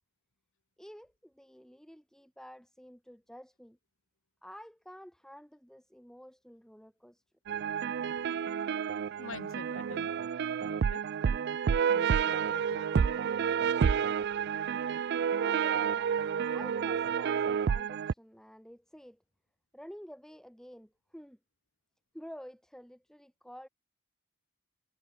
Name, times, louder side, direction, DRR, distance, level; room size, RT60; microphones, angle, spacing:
voice 1, 0.8-3.8 4.4-7.2 8.2-8.3 12.4-12.5 13.8-14.2 15.4-16.2 16.5-19.2 19.7-21.4 22.1-23.7, equal, 5° left, 2.5 m, -50 dB
sound 1, 7.5-18.1, right 7 dB, 50° right, 0.3 m, -30 dB
voice 2, 9.2-10.2 10.6-11.0 11.9-13.1, left 3 dB, 70° left, 3.0 m, -46 dB
head